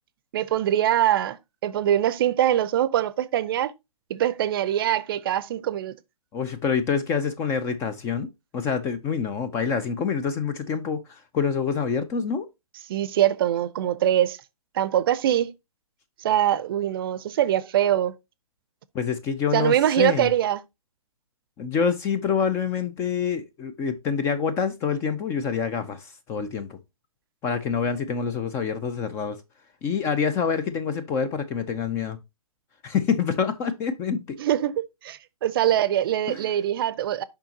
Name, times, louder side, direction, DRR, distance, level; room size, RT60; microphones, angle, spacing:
voice 1, 0.3-1.4 1.6-3.7 4.1-6.0 12.9-14.4 14.7-15.5 16.2-18.2 19.5-20.6 34.4-37.2, right 11 dB, 40° right, 0.6 m, -23 dB
voice 2, 6.3-8.3 8.5-12.5 18.9-20.3 21.6-26.8 27.4-29.4 29.8-32.2 32.8-34.4 36.3-36.4, left 6 dB, 15° left, 0.4 m, -26 dB
6.7 x 5.6 x 2.8 m
hypercardioid pair, 140°, 19 cm